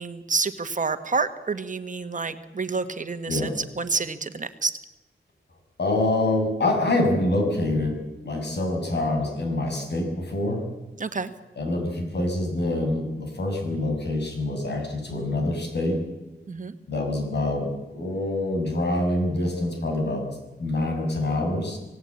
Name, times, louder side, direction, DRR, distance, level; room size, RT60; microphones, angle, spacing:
voice 1, 0.0-4.7 11.0-11.3 16.5-16.7, right 4 dB, 45° right, 9 dB, 1.6 m, -28 dB
voice 2, 5.8-8.0 8.2-10.6 11.6-16.0 16.9-20.2 20.6-21.8, left 2 dB, 65° left, 3 dB, 6.7 m, -25 dB
27.0 x 17.5 x 8.6 m, 1.0 s
wide cardioid pair, 130°, 19 cm